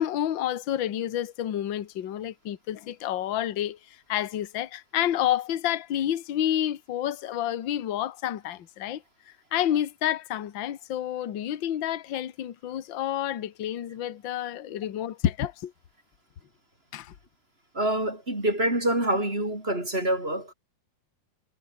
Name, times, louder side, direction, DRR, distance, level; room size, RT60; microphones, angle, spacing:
voice 1, 0.0-9.0 9.5-15.7 16.9-17.1, left 11 dB, 50° left, 1.6 m, -29 dB
voice 2, 17.7-20.5, right 1 dB, 15° right, 5.7 m, -26 dB
omnidirectional pair, 3.7 m